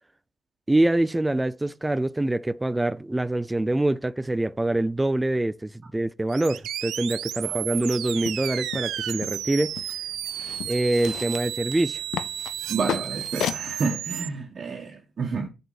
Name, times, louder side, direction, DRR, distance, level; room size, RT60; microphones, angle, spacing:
voice 1, 0.7-9.8 10.7-12.0, right 1 dB, 10° right, 0.4 m, -25 dB
sound 1, 6.3-14.3, right 11 dB, 80° right, 0.4 m, -33 dB
sound 2, 8.2-13.7, left 10 dB, 75° left, 0.4 m, -36 dB
voice 2, 12.7-15.5, right 4 dB, 45° right, 1.5 m, -30 dB
7.5 x 5.3 x 4.1 m
cardioid pair, 90°, 0 cm